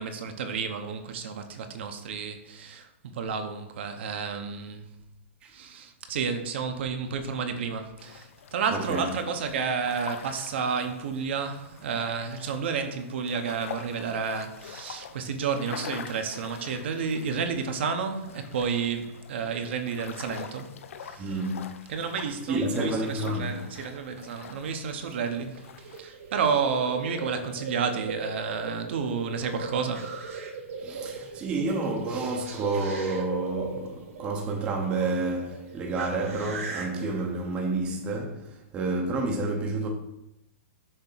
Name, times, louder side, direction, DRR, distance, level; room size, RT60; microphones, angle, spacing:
voice 1, 0.0-4.8 5.5-21.3 21.9-30.1, right 6 dB, 55° right, 0.9 m, -31 dB
sound 1, 8.0-26.0, left 7 dB, 70° left, 0.7 m, -45 dB
voice 2, 8.7-9.0 21.2-21.7 22.5-23.6 30.8-39.9, right 2 dB, 15° right, 0.7 m, -29 dB
sound 2, 25.4-37.8, right 4 dB, 75° right, 1.8 m, -39 dB
6.6 x 3.4 x 5.6 m
hypercardioid pair, 170°, 7 cm